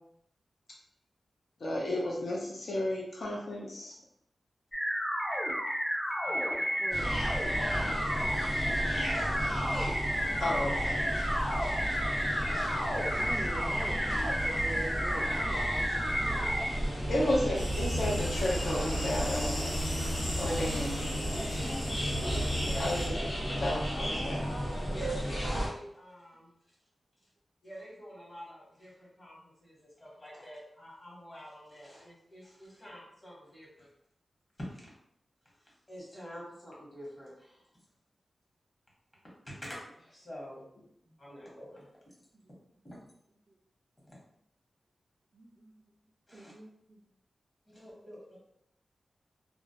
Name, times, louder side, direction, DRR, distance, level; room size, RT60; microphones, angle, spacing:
voice 1, 1.6-4.0 10.4-11.0 12.8-12.9 17.1-19.7 20.4-21.0 22.8-23.1 23.6-24.5, left 1 dB, 75° left, -2 dB, 0.7 m, -32 dB
sound 1, 4.7-16.7, equal, 10° left, 0.6 m, -32 dB
voice 2, 6.2-6.9 7.8-8.5 8.7-9.5 22.5-23.1 24.9-26.5 27.6-33.9 34.7-34.8 35.6-37.6 39.6-40.6 41.2-42.1 42.8-43.0 44.0-44.2 46.3-46.5 47.6-48.4, equal, 30° left, -5 dB, 1.1 m, -47 dB
sound 2, 6.9-25.7, equal, 60° left, 1.0 m, -34 dB
voice 3, 13.2-16.0 42.3-42.5 43.5-43.6 45.3-45.8 46.3-47.0, right 1 dB, 45° right, 0 dB, 0.3 m, -42 dB
sound 3, 17.5-23.1, equal, 90° left, 1.1 m, -35 dB
2.3 x 2.0 x 2.8 m, 0.74 s
wide cardioid pair, 85°, 0 cm